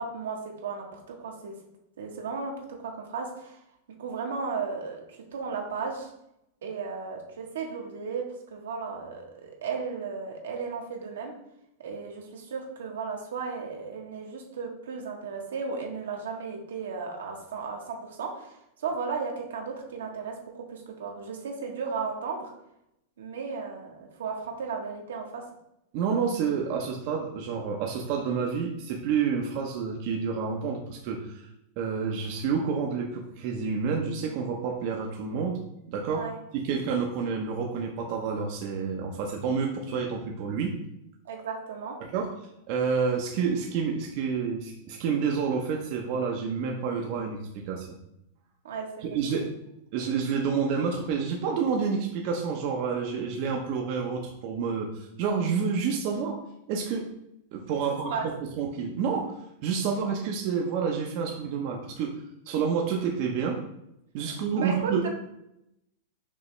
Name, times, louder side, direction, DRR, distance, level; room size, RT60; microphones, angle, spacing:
voice 1, 0.0-1.5 2.0-2.5 2.8-3.6 4.0-6.1 6.6-8.2 8.5-11.3 11.8-22.5 23.2-25.4 36.1-36.4 41.2-42.0 48.6-49.2 58.1-58.2 64.2-65.1, right 5 dB, 90° right, 0 dB, 1.2 m, -35 dB
voice 2, 25.9-31.5 31.8-35.6 35.9-36.3 36.5-40.8 42.1-42.3 42.7-48.0 49.0-49.5 49.9-56.4 56.7-57.1 57.5-58.2 58.6-59.3 59.6-62.2 62.5-63.6 64.1-65.0, right 6 dB, 55° right, 0 dB, 0.7 m, -29 dB
5.2 x 2.8 x 3.2 m, 0.82 s
hypercardioid pair, 130°, 0 cm